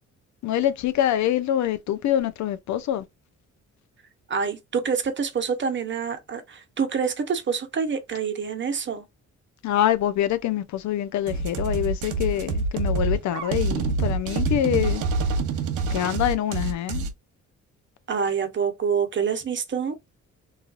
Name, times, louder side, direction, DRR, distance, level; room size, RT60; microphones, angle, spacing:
voice 1, 0.4-3.0 9.6-15.0 15.9-17.0, left 11 dB, 70° left, 0.5 m, -25 dB
voice 2, 4.3-9.0 18.1-20.0, right 6 dB, 40° right, 0.8 m, -26 dB
sound 1, 11.3-17.1, right 3 dB, 90° right, 0.7 m, -26 dB
3.1 x 2.3 x 2.4 m
cardioid pair, 90°, 30 cm